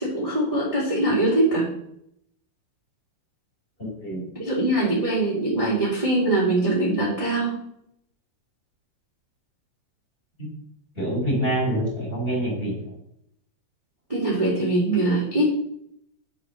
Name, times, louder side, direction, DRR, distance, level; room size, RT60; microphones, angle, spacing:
voice 1, 0.0-1.7 4.4-7.6 14.1-15.5, right 2 dB, 10° right, -6 dB, 2.0 m, -22 dB
voice 2, 3.8-4.2 10.4-10.5 10.9-12.7, right 1 dB, 15° left, -2 dB, 3.2 m, -26 dB
9.8 x 6.2 x 6.6 m, 0.72 s
omnidirectional pair, 5.7 m